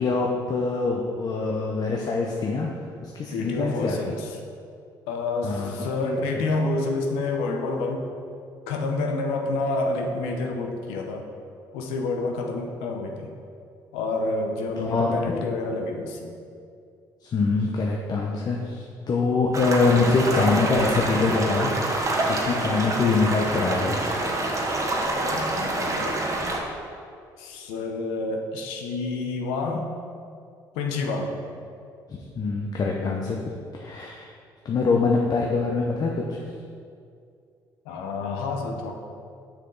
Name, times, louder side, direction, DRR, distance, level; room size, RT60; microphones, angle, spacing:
voice 1, 0.0-2.7 3.0-4.1 5.4-5.8 6.0-6.2 14.8-15.3 17.2-24.0 32.1-33.4 33.7-34.3 34.6-36.4, left 4 dB, 45° left, -1 dB, 0.8 m, -24 dB
voice 2, 3.3-4.4 5.1-8.1 8.7-11.3 11.7-13.3 13.9-16.3 25.2-26.2 27.4-30.0 30.7-31.4 37.8-38.9, left 3 dB, 85° left, 2 dB, 0.8 m, -28 dB
sound 1, 19.5-26.6, right 2 dB, 35° right, 1.2 m, -26 dB
6.3 x 6.0 x 3.9 m, 2.3 s
supercardioid pair, 65°, 9 cm